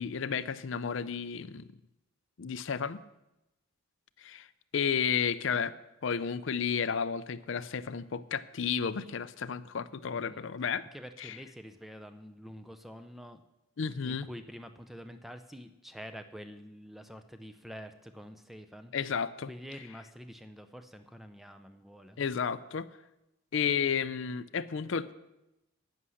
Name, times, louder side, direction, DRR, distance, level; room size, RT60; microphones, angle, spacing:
voice 1, 0.0-1.7 2.4-3.0 4.2-4.5 4.7-5.7 6.0-10.8 11.2-11.4 13.8-14.3 18.9-19.5 22.2-22.9 23.5-25.1, left 6 dB, 60° left, 14 dB, 0.5 m, -32 dB
voice 2, 10.1-10.5 10.9-13.4 14.0-18.9 19.5-22.2, equal, ahead, 8 dB, 0.5 m, -47 dB
11.0 x 9.6 x 6.4 m, 0.94 s
head